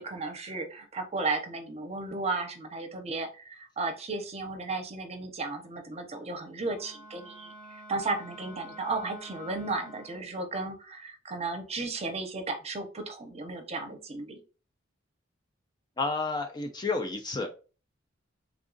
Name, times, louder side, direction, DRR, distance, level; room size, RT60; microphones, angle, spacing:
voice 1, 0.0-14.4, right 3 dB, 30° right, 5 dB, 0.7 m, -34 dB
Wind instrument woodwind instrument, 6.7-10.3, equal, 5° left, 0.8 m, -48 dB
voice 2, 16.0-17.5, left 3 dB, 20° left, 4 dB, 0.4 m, -30 dB
3.6 x 2.4 x 3.7 m, 0.34 s
head